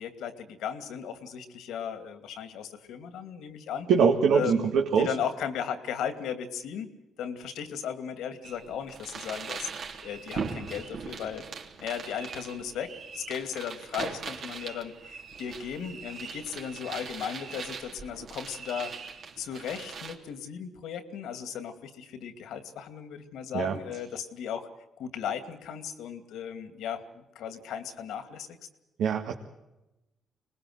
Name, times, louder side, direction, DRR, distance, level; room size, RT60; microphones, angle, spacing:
voice 1, 0.0-3.9 4.3-4.7 5.0-6.9 7.2-9.7 10.0-11.5 11.8-18.9 19.4-24.7 25.0-28.6, left 8 dB, 85° left, 10 dB, 2.5 m, -36 dB
voice 2, 3.9-5.1 23.5-23.8 29.0-29.3, right 6 dB, 80° right, 2 dB, 2.0 m, -23 dB
sound 1, 8.4-20.1, right 5 dB, 60° right, 3.4 m, -40 dB
24.0 x 20.5 x 8.0 m, 0.97 s
cardioid pair, 90°, 0 cm